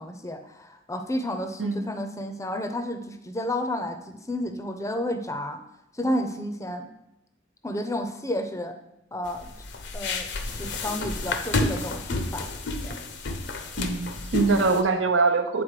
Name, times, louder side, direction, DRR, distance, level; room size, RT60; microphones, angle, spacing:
voice 1, 0.0-5.6 6.0-6.9 7.6-8.7 9.1-9.5 9.9-12.5 12.8-12.9 14.4-14.6, left 1 dB, 15° left, 7 dB, 0.6 m, -31 dB
sound 1, 9.3-14.8, left 2 dB, 65° left, 0.8 m, -30 dB
voice 2, 13.8-15.6, right 3 dB, 75° right, 6 dB, 0.8 m, -23 dB
8.9 x 4.1 x 4.9 m, 0.86 s
head